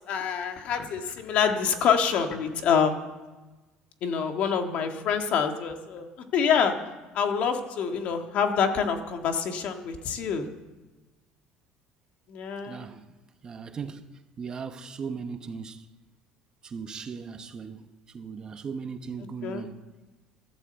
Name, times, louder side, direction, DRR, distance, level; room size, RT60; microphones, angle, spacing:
voice 1, 0.1-3.0 4.0-6.7 7.1-10.5 12.3-12.8 19.4-19.6, left 7 dB, 50° left, 1.8 m, -26 dB
voice 2, 12.7-13.1 13.4-15.9 16.6-19.8, right 5 dB, 25° right, 0.9 m, -38 dB
14.0 x 12.0 x 8.0 m
cardioid pair, 150°, 3 cm